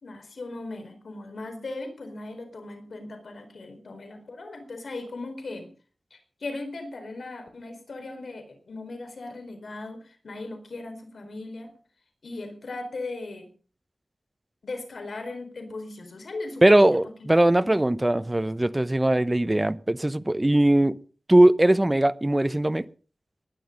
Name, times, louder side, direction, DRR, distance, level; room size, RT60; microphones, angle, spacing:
voice 1, 0.0-5.7 6.1-11.7 12.2-13.5 14.6-17.8, left 2 dB, 75° left, 4.4 m, -38 dB
voice 2, 16.6-21.0 21.3-22.8, right 1 dB, 20° right, 0.8 m, -20 dB
19.0 x 11.0 x 5.3 m
wide cardioid pair, 75°, 0 cm